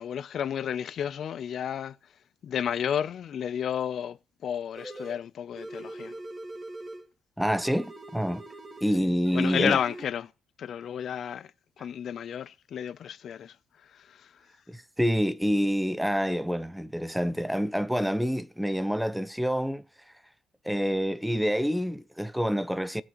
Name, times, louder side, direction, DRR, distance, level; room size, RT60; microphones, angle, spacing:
voice 1, 0.0-1.9 2.4-4.2 4.4-6.1 9.0-10.3 10.6-11.5 11.8-13.5, left 9 dB, 65° left, 0.6 m, -31 dB
sound 1, 4.7-5.2 5.6-7.1 7.4-8.9 9.2-10.1, right 2 dB, 35° right, 2.3 m, -42 dB
voice 2, 7.4-8.4 8.8-9.8 14.7-20.1 20.6-23.0, equal, ahead, 0.6 m, -27 dB
18.5 x 6.2 x 3.1 m
cardioid pair, 90°, 0 cm